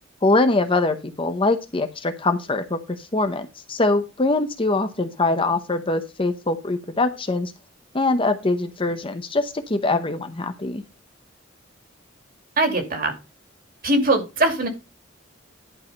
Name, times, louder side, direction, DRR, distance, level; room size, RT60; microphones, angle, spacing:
voice 1, 0.2-7.5 7.9-10.8, left 2 dB, 25° left, 8 dB, 0.9 m, -23 dB
voice 2, 12.6-13.1 13.8-14.7, right 2 dB, 45° right, 4 dB, 2.4 m, -21 dB
11.0 x 4.9 x 5.4 m, 0.27 s
head